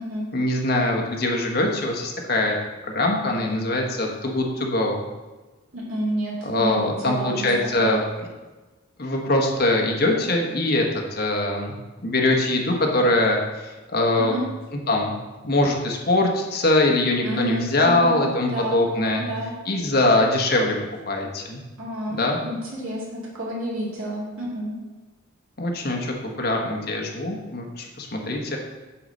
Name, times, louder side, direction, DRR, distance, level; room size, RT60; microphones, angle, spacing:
voice 1, 0.3-2.6 2.9-5.0 6.4-8.0 9.0-10.8 11.1-11.7 12.0-14.4 14.9-15.1 15.4-19.2 19.6-20.8 21.1-21.6 22.1-22.4 25.6-28.6, left 2 dB, 45° left, 1 dB, 1.2 m, -22 dB
voice 2, 5.7-7.5 7.8-8.0 14.1-14.4 17.2-18.8 19.2-19.5 21.8-24.8, right 1 dB, 80° right, -5 dB, 2.2 m, -30 dB
8.4 x 4.1 x 6.5 m, 1.2 s
head